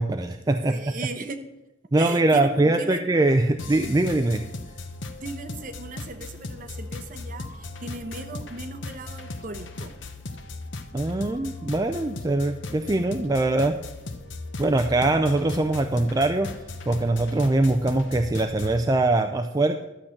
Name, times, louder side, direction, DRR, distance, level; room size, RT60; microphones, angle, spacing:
voice 1, 0.0-0.8 1.9-4.5 10.9-13.8 14.6-19.8, right 2 dB, 20° right, 6 dB, 0.4 m, -22 dB
voice 2, 0.6-1.4 2.0-3.0 5.2-9.9, right 3 dB, 45° right, 7 dB, 1.0 m, -37 dB
sound 1, 3.6-18.8, left 2 dB, 75° left, 1.0 m, -37 dB
12.0 x 7.2 x 6.5 m, 1.0 s
head